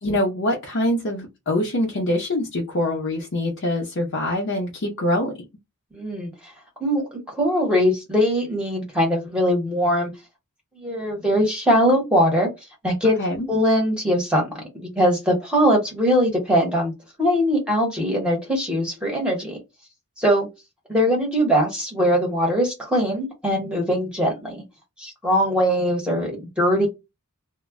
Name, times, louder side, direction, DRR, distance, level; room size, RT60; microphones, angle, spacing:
voice 1, 0.0-5.4 13.2-13.5, left 1 dB, 55° left, 0.6 m, -24 dB
voice 2, 5.9-6.3 6.8-10.1 10.8-12.5 12.8-13.1 13.5-16.9 17.2-19.6 20.2-20.5 20.9-24.6 25.0-26.9, equal, 5° right, 0.9 m, -21 dB
2.1 x 2.0 x 3.5 m
head